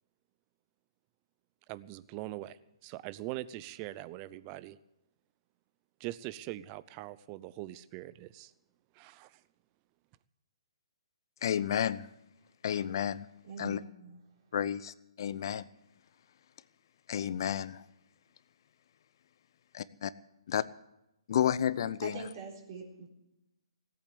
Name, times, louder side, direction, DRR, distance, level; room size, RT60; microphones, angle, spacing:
voice 1, 1.7-4.8 6.0-8.5 8.9-9.4, right 16 dB, 30° right, 0.6 m, -42 dB
voice 2, 11.4-12.1 12.6-13.3 13.6-13.8 14.5-15.7 17.1-17.8 19.7-20.1 20.5-20.6 21.3-22.2, left 9 dB, 55° left, 0.6 m, -31 dB
voice 3, 13.4-14.2 22.0-23.1, right 4 dB, 45° right, 3.8 m, -43 dB
17.5 x 8.6 x 8.6 m
hypercardioid pair, 140°, 3 cm